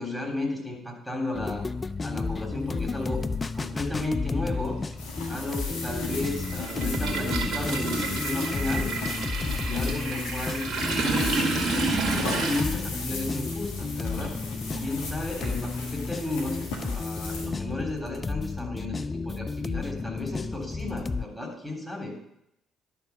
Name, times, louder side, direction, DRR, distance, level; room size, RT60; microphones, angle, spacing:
voice 1, 0.0-1.7 2.0-3.2 3.5-4.8 5.3-8.9 9.6-11.6 12.1-14.3 14.8-22.2, left 2 dB, ahead, 0 dB, 3.3 m, -33 dB
sound 1, 1.3-21.2, left 4 dB, 25° left, 0.4 m, -33 dB
Toilet flush, 2.1-2.2 3.5-3.7 4.0-12.6, right 3 dB, 55° right, 1.9 m, -30 dB
sound 2, 5.0-17.5, left 3 dB, 65° left, 1.7 m, -38 dB
voice 2, 5.2-5.6 14.2-15.1, right 2 dB, 25° right, -4 dB, 1.9 m, -48 dB
11.0 x 5.9 x 5.8 m, 0.80 s
figure-of-eight pair, 45°, 0 cm